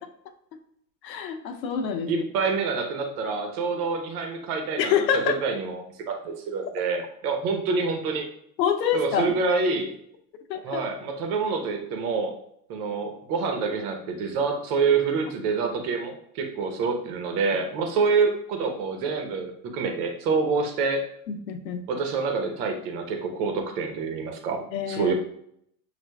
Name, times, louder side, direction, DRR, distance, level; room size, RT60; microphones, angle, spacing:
voice 1, 1.0-2.2 4.8-5.4 8.6-9.3 10.5-10.8 21.3-21.8 24.7-25.1, left 8 dB, 85° left, 7 dB, 0.7 m, -26 dB
voice 2, 2.0-8.3 8.9-9.9 10.6-12.3 12.7-21.0 21.9-25.1, right 4 dB, 65° right, 4 dB, 1.0 m, -27 dB
6.6 x 2.4 x 2.3 m, 0.72 s
hypercardioid pair, 110°, 49 cm